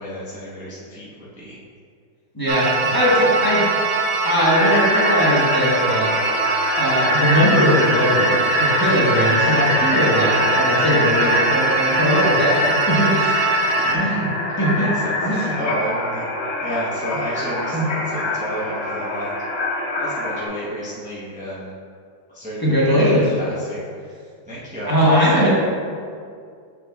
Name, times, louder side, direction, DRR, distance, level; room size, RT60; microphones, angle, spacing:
voice 1, 0.0-1.6 13.8-14.1 14.6-16.3 16.6-19.3 20.0-21.7 22.3-23.8 24.5-25.5, equal, 5° right, -9 dB, 0.6 m, -31 dB
voice 2, 2.3-3.6 4.2-6.1 6.8-13.4 13.9-14.3 14.6-14.8 15.2-15.5 17.7-17.8 22.6-23.3 24.9-25.5, equal, 15° left, -8 dB, 1.0 m, -19 dB
sound 1, 2.5-13.9, right 4 dB, 80° right, 0.7 m, -22 dB
sound 2, 4.4-20.4, left 2 dB, 50° left, 0.8 m, -24 dB
7.0 x 6.7 x 2.4 m, 2.2 s
omnidirectional pair, 2.2 m